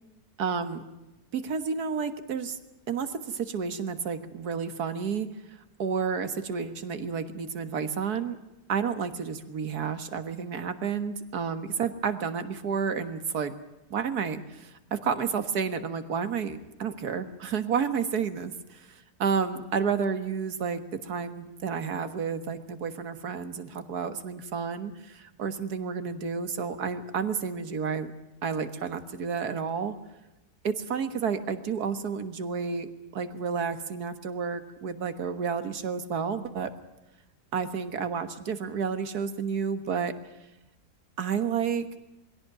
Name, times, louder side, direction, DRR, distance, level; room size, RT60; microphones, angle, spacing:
voice 1, 0.4-0.8 1.3-2.6 2.9-5.3 5.8-8.4 8.7-13.5 13.9-28.1 28.4-30.0 30.6-36.7 37.5-40.1 41.2-41.9, right 6 dB, 75° right, 10 dB, 2.0 m, -31 dB
22.0 x 16.5 x 9.0 m, 1.0 s
omnidirectional pair, 1.7 m